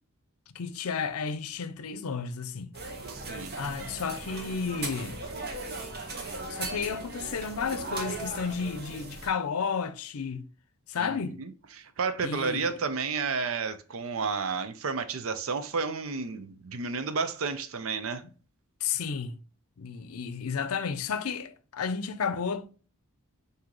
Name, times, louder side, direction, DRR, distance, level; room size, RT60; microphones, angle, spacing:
voice 1, 0.5-2.7 3.6-5.2 6.5-10.4 10.9-11.4 12.2-12.7 18.8-19.3 19.8-22.7, left 6 dB, 80° left, 0.5 m, -32 dB
sound 1, 2.7-9.3, right 3 dB, 50° right, 1.2 m, -38 dB
voice 2, 3.1-3.5 11.0-18.2, right 4 dB, 65° right, 0.6 m, -32 dB
6.0 x 2.7 x 3.0 m
head